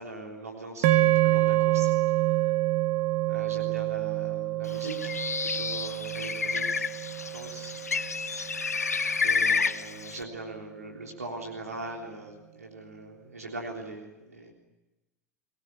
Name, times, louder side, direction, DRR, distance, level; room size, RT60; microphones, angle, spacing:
voice 1, 0.0-2.4 3.3-7.0 7.2-7.8 9.2-14.5, right 2 dB, 85° right, 0 dB, 3.6 m, -41 dB
sound 1, 0.8-9.2, right 17 dB, 55° right, 1.2 m, -27 dB
Bird, 4.7-10.2, left 5 dB, 90° left, 0.8 m, -30 dB
23.5 x 18.5 x 9.9 m, 1.0 s
figure-of-eight pair, 90°, 8 cm